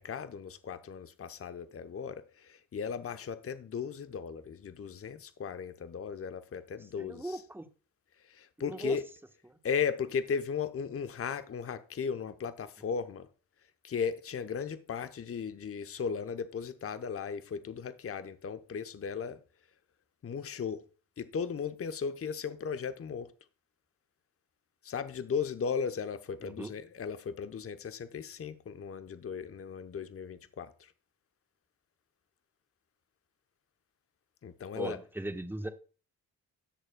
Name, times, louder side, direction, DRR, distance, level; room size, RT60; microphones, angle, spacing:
voice 1, 0.0-7.4 8.2-9.1 9.6-13.3 13.8-19.4 20.2-20.8 21.2-23.3 24.8-30.9 34.4-35.0, left 6 dB, 35° left, 0.8 m, -36 dB
voice 2, 7.0-7.6 8.6-9.0 9.5-9.6 26.4-26.7 34.7-35.7, right 1 dB, 5° right, 1.2 m, -38 dB
17.0 x 6.5 x 2.2 m
hypercardioid pair, 40°, 41 cm